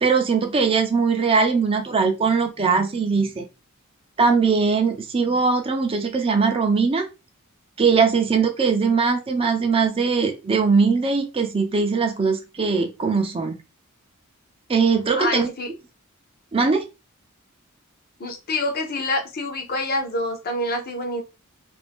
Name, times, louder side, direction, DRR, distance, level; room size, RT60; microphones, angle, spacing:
voice 1, 0.0-3.5 4.2-7.1 7.8-13.6 14.7-15.5 16.5-16.9, right 5 dB, 25° right, 5 dB, 0.4 m, -20 dB
voice 2, 15.1-15.7 18.2-21.2, left 1 dB, 45° left, 4 dB, 0.7 m, -26 dB
2.5 x 2.2 x 3.4 m, 0.27 s
head